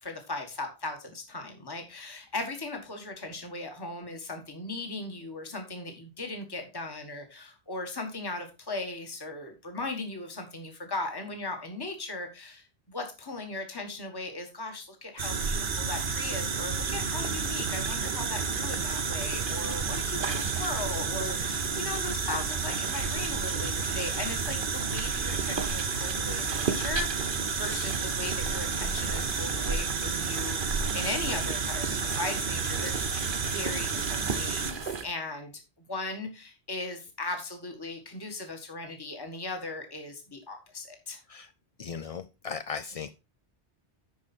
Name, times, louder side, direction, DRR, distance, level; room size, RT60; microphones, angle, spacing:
voice 1, 0.0-35.5 35.9-41.2, left 2 dB, 20° left, 4 dB, 1.6 m, -38 dB
sound 1, 15.2-35.1, right 5 dB, 50° right, 1.1 m, -30 dB
voice 2, 41.8-43.1, left 6 dB, 55° left, 11 dB, 0.4 m, -37 dB
11.5 x 4.8 x 4.3 m, 0.28 s
omnidirectional pair, 1.1 m